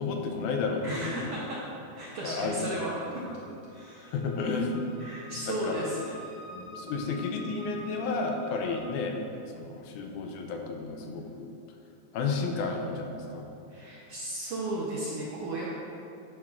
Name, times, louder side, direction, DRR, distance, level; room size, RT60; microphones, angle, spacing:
voice 1, 0.0-1.4 2.2-2.7 3.1-3.2 4.1-4.8 5.5-5.8 6.5-9.1 9.5-11.5 12.1-13.5, left 4 dB, 85° left, 2 dB, 2.1 m, -32 dB
voice 2, 0.8-1.6 2.0-3.2 3.7-4.2 5.0-6.2 11.0-11.2 13.7-15.7, right 1 dB, 70° right, -5 dB, 1.4 m, -35 dB
sound 1, 3.5-8.8, equal, 65° left, 1.5 m, -48 dB
10.5 x 5.9 x 2.4 m, 2.6 s
omnidirectional pair, 3.5 m